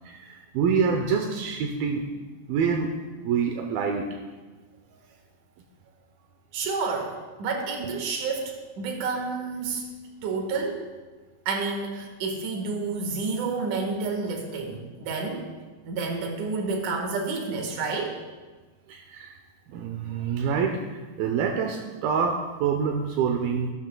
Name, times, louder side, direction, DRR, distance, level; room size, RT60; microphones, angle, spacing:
voice 1, 0.0-2.0 2.5-2.9 3.2-4.1 18.9-19.3 19.7-23.7, right 6 dB, 80° right, 2 dB, 2.2 m, -26 dB
voice 2, 6.5-9.8 10.2-10.9 11.5-15.4 15.9-18.2, right 4 dB, 55° right, 2 dB, 2.5 m, -29 dB
17.0 x 12.5 x 2.3 m, 1.3 s
omnidirectional pair, 5.0 m